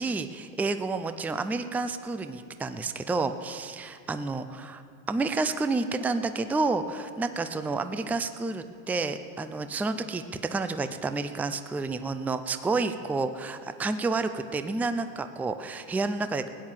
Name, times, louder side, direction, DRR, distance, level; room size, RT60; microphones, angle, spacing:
voice 1, 0.0-4.8 5.1-16.5, right 3 dB, 5° right, 10 dB, 0.4 m, -30 dB
15.5 x 9.5 x 7.4 m, 2.4 s
supercardioid pair, 115°, 40 cm